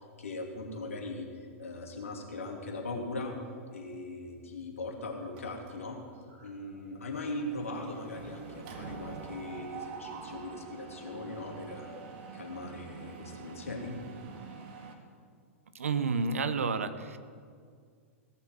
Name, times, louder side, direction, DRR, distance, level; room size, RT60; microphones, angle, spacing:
voice 1, 0.2-1.3 1.6-3.3 3.7-6.0 6.4-12.0 12.3-14.0, left 2 dB, 75° left, 1 dB, 2.6 m, -39 dB
Mechanisms, 5.4-6.0 6.3-6.5 6.8-14.9, right 5 dB, 45° right, 1.9 m, -46 dB
voice 2, 15.7-17.2, right 4 dB, 70° right, 12 dB, 0.9 m, -30 dB
17.0 x 6.9 x 7.5 m, 2.1 s
figure-of-eight pair, 100°, 8 cm